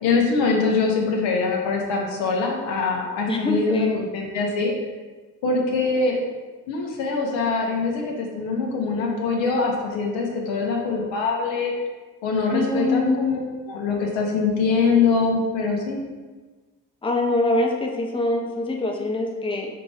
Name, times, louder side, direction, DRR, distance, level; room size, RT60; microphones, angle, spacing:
voice 1, 0.0-4.7 5.4-6.2 6.7-11.7 12.2-13.4 13.7-16.0, left 4 dB, 70° left, 0 dB, 0.9 m, -23 dB
voice 2, 3.3-4.0 12.5-13.1 17.0-19.7, left 2 dB, 10° left, 0 dB, 0.7 m, -24 dB
5.7 x 2.5 x 3.3 m, 1.3 s
hypercardioid pair, 40°, 46 cm